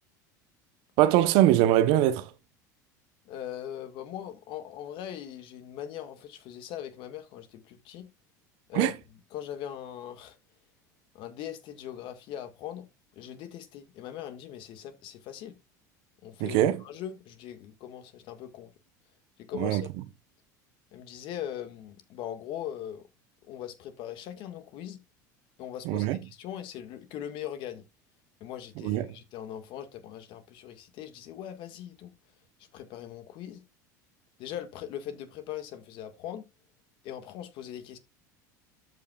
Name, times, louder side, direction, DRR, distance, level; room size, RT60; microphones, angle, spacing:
voice 1, 1.0-2.3 8.7-8.9 16.4-16.8 19.5-19.8 25.9-26.2 28.8-29.0, right 13 dB, 65° right, 0.9 m, -22 dB
voice 2, 3.3-8.1 8.7-9.0 9.3-10.4 11.1-12.9 13.1-15.5 16.2-18.7 19.4-19.9 20.9-23.1 23.5-25.0 25.6-27.9 28.4-32.1 32.7-33.6 34.4-36.4 37.0-38.0, left 10 dB, 60° left, 1.8 m, -40 dB
13.0 x 5.5 x 2.4 m
hypercardioid pair, 90°, 10 cm